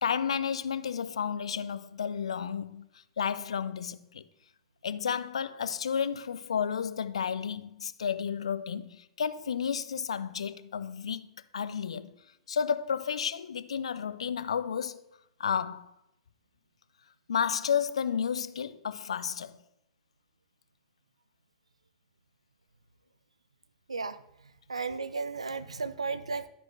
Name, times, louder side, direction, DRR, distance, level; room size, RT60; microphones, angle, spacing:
voice 1, 0.0-2.9 3.2-4.2 4.8-11.3 11.5-12.2 12.5-15.0 15.4-15.9 17.3-19.6 25.1-25.2, left 7 dB, 75° left, 0.4 m, -32 dB
voice 2, 24.7-26.5, right 4 dB, 85° right, 0.4 m, -34 dB
12.5 x 4.4 x 3.2 m
figure-of-eight pair, 95°, 3 cm